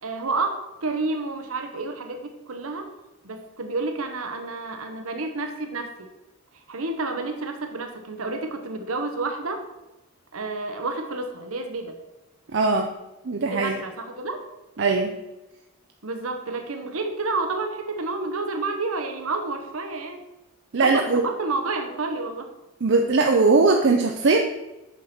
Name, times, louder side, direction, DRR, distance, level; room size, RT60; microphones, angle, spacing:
voice 1, 0.0-2.9 3.2-5.9 6.5-9.7 10.3-11.9 13.4-14.4 16.0-20.2 20.8-22.5, right 3 dB, 80° right, 5 dB, 1.0 m, -30 dB
voice 2, 12.5-12.9 13.2-13.8 14.8-15.1 20.7-21.2 22.8-24.4, right 3 dB, 55° right, 3 dB, 0.6 m, -20 dB
8.2 x 6.1 x 4.2 m, 1.0 s
head